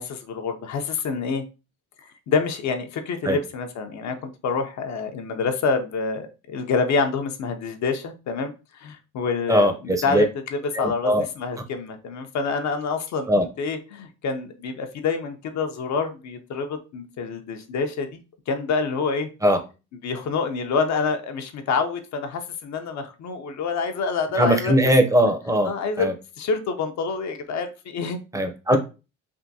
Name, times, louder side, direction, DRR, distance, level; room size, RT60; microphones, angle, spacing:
voice 1, 0.0-1.4 2.0-10.2 10.5-18.2 18.5-19.3 20.0-24.7 25.7-26.1 26.4-28.5 28.7-28.8, left 4 dB, 65° left, 6 dB, 0.6 m, -27 dB
voice 2, 9.5-10.3 10.7-11.3 13.3-13.4 19.4-19.6 24.4-25.7 26.0-26.1 28.3-28.8, equal, 10° right, 6 dB, 0.6 m, -20 dB
3.5 x 2.5 x 2.7 m, 0.31 s
cardioid pair, 90°, 30 cm